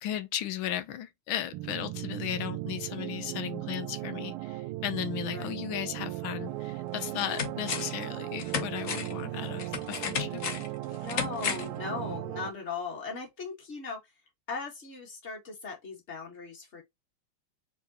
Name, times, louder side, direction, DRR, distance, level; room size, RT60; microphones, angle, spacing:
voice 1, 0.0-10.4, left 11 dB, 75° left, 1.5 m, -36 dB
sound 1, 1.5-12.5, right 16 dB, 90° right, 1.4 m, -37 dB
sound 2, 6.4-6.5 6.9-8.0 8.4-11.8 12.1-12.2, left 6 dB, 50° left, 1.1 m, -34 dB
voice 2, 11.0-14.0 14.5-16.8, left 4 dB, 35° left, 1.9 m, -38 dB
4.6 x 3.9 x 3.0 m
omnidirectional pair, 2.2 m